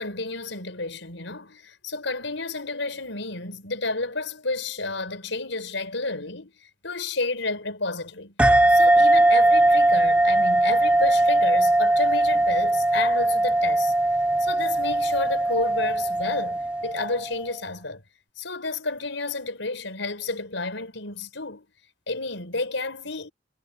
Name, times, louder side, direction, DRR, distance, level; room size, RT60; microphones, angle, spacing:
voice 1, 0.0-6.5 6.8-8.3 8.7-13.9 14.4-18.0 18.4-21.6 22.1-23.3, left 3 dB, 80° left, 5.1 m, -31 dB
sound 1, 8.4-17.4, right 2 dB, 5° right, 0.8 m, -20 dB
head